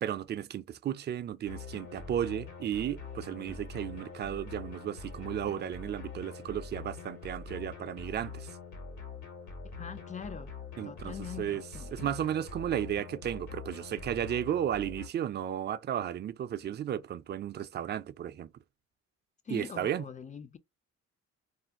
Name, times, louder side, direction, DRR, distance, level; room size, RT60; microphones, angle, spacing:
voice 1, 0.0-8.5 10.8-11.6 11.9-18.5 19.5-20.0, right 10 dB, 35° right, 0.4 m, -34 dB
sound 1, 1.5-15.1, left 4 dB, 75° left, 1.4 m, -44 dB
voice 2, 9.6-10.5 10.8-12.1 19.4-20.6, left 6 dB, 25° left, 0.4 m, -43 dB
2.5 x 2.2 x 3.6 m
cardioid pair, 90°, 30 cm